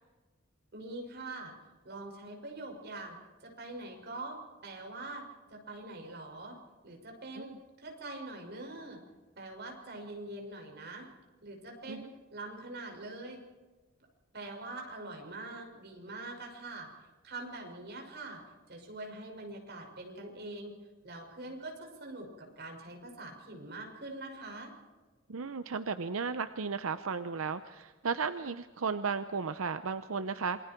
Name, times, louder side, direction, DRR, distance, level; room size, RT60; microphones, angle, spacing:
voice 1, 0.7-1.5 1.8-5.2 5.5-6.6 6.8-9.0 9.4-11.1 11.4-13.4 14.3-16.9 17.2-18.4 18.7-20.7 21.0-24.7, right 2 dB, 55° right, 2 dB, 6.1 m, -44 dB
voice 2, 25.3-30.6, right 5 dB, 90° right, 11 dB, 0.7 m, -34 dB
28.0 x 23.0 x 4.6 m, 1.3 s
head